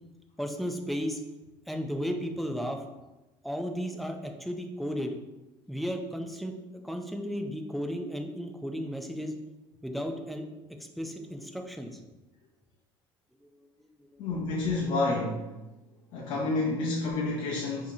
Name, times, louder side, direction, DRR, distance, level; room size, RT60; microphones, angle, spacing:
voice 1, 0.4-1.2 1.7-2.8 3.4-5.2 5.7-9.3 9.8-10.5 11.0-12.0 13.4-13.5 13.9-14.2, equal, ahead, 3 dB, 0.4 m, -34 dB
voice 2, 14.2-15.6 16.1-17.9, left 2 dB, 55° left, -3 dB, 0.7 m, -29 dB
5.5 x 2.8 x 2.7 m, 1.1 s
cardioid pair, 140°, 10 cm